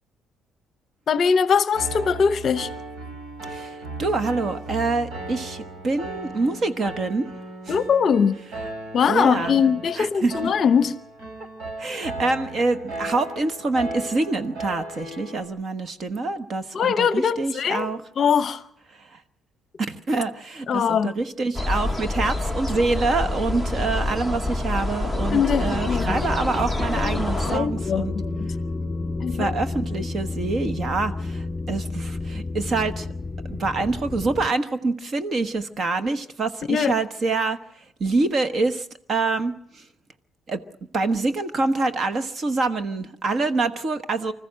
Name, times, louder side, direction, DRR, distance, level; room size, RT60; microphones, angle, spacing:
voice 1, 1.1-2.7 7.7-8.4 8.9-11.0 16.7-18.6 20.7-21.1 25.3-26.2 27.0-28.3 29.2-29.5 30.0-30.1 36.7-36.9, left 6 dB, 40° left, 0.8 m, -22 dB
Piano, 1.7-15.5, right 2 dB, 80° right, 5.1 m, -36 dB
voice 2, 3.5-7.3 9.1-9.6 10.0-10.3 11.8-18.0 19.0-19.2 19.9-28.1 29.3-33.1 33.5-37.6 38.0-39.8 40.5-40.6 40.9-44.3, right 3 dB, 35° right, 1.1 m, -26 dB
sound 1, 21.5-27.6, left 2 dB, 5° right, 0.9 m, -27 dB
sound 2, 25.2-34.5, left 3 dB, 15° left, 2.4 m, -31 dB
25.5 x 14.5 x 7.5 m
cardioid pair, 165°, 0 cm